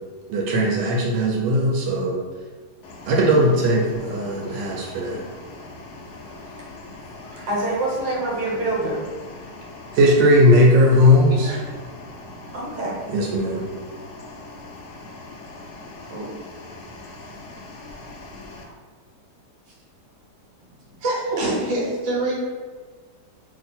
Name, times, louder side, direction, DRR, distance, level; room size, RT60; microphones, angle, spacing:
voice 1, 0.3-2.2 3.1-5.2 9.9-11.5 13.1-13.6, equal, 85° right, -2 dB, 1.3 m, -18 dB
sound 1, 2.8-18.6, left 2 dB, 80° left, 0.6 m, -41 dB
voice 2, 7.1-9.0 12.5-13.0 16.1-16.4 18.6-18.7, right 2 dB, 65° right, -3 dB, 1.4 m, -27 dB
voice 3, 21.0-22.3, right 2 dB, 50° right, -5 dB, 1.1 m, -24 dB
2.8 x 2.6 x 4.1 m, 1.5 s
omnidirectional pair, 1.9 m